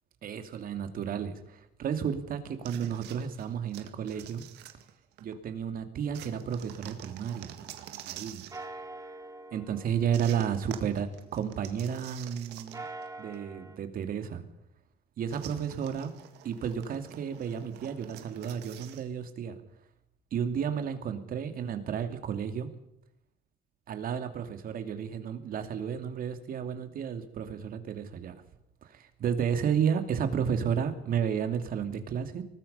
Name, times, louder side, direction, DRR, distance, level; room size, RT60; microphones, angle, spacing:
voice 1, 0.2-4.4 5.2-7.6 8.0-8.4 9.5-12.8 13.2-14.4 15.2-16.1 16.4-19.6 20.3-22.7 23.9-28.4 28.8-32.4, right 8 dB, 55° right, 8 dB, 2.7 m, -32 dB
sound 1, 2.6-5.3 6.1-8.7 10.1-13.1 13.3-13.4 15.3-19.1, right 12 dB, 90° right, 1.9 m, -47 dB
sound 2, 6.4-8.1 8.5-12.0 12.5-13.8, right 2 dB, 20° right, 2.3 m, -46 dB
24.0 x 19.5 x 5.7 m, 0.81 s
cardioid pair, 110°, 17 cm